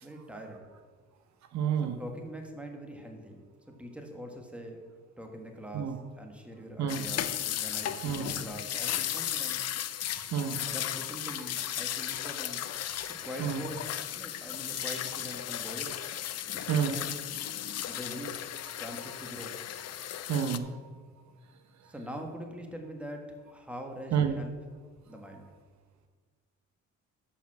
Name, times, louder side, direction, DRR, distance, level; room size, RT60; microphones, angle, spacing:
voice 1, 0.0-0.7 1.8-3.4 3.7-4.8 5.2-9.6 10.6-12.6 13.2-16.0 16.5-17.2 17.9-18.4 18.8-19.6 21.8-24.5 25.1-25.5, equal, 5° right, 2 dB, 1.5 m, -43 dB
voice 2, 1.5-2.0 5.7-6.0 6.8-7.0 8.0-8.3 10.1-10.7 13.4-13.6 14.7-14.8 16.7-16.9 20.3-20.7 24.1-24.3, right 8 dB, 65° right, 6 dB, 0.8 m, -29 dB
sound 1, 6.9-20.6, left 11 dB, 55° left, 0.6 m, -35 dB
6.9 x 5.8 x 7.3 m, 1.5 s
cardioid pair, 90°, 30 cm